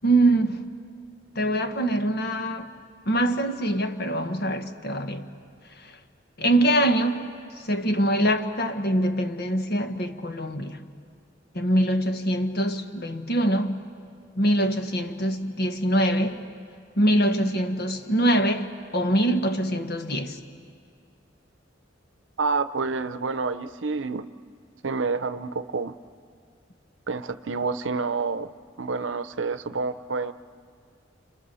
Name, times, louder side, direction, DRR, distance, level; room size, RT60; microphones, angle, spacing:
voice 1, 0.0-0.6 1.3-2.7 3.1-5.3 5.8-6.0 6.4-7.2 7.6-10.8 11.5-13.8 14.3-16.4 16.9-20.4, right 1 dB, 55° left, 1.5 m, -24 dB
voice 2, 22.4-24.3 24.8-25.9 27.1-28.5 28.8-30.3, right 4 dB, 80° right, 0.7 m, -28 dB
30.0 x 28.0 x 7.0 m
head